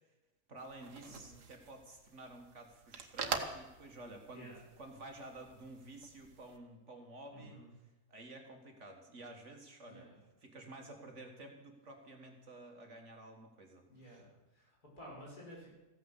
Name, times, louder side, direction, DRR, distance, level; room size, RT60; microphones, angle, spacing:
voice 1, 0.5-7.6 8.1-10.1 10.4-14.2, right 2 dB, 50° right, 3 dB, 1.9 m, -52 dB
sound 1, 0.6-6.6, right 6 dB, 85° right, 1.8 m, -45 dB
voice 2, 1.0-1.4 4.3-4.6 7.3-7.7 9.9-10.2 13.9-15.7, equal, 70° left, -3 dB, 5.6 m, -53 dB
15.0 x 9.2 x 7.3 m, 1.1 s
omnidirectional pair, 1.7 m